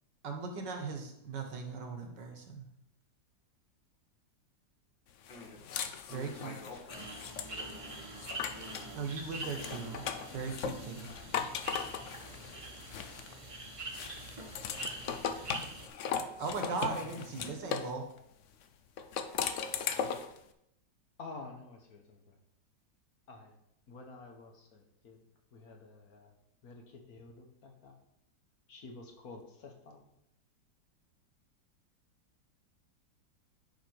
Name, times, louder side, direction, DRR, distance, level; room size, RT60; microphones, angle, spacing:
voice 1, 0.2-2.7 6.1-6.5 8.9-10.1 10.3-11.1 16.4-18.1, right 4 dB, 70° right, 4 dB, 1.9 m, -38 dB
voice 2, 5.3-5.8 6.1-7.3 11.9-12.8 16.6-16.8, left 3 dB, 85° left, 0 dB, 2.6 m, -51 dB
sound 1, 5.3-8.9 9.3-13.5 13.9-17.9 19.0-20.4, left 7 dB, 70° left, 0.7 m, -38 dB
sound 2, 6.9-15.9, right 2 dB, 20° right, 1.0 m, -44 dB
voice 3, 17.0-17.3 21.2-22.4 23.3-23.5 23.9-25.2 25.5-26.3 26.6-28.0 28.7-30.1, left 3 dB, 55° left, 3 dB, 1.7 m, -50 dB
10.5 x 5.0 x 4.6 m, 0.80 s
omnidirectional pair, 2.0 m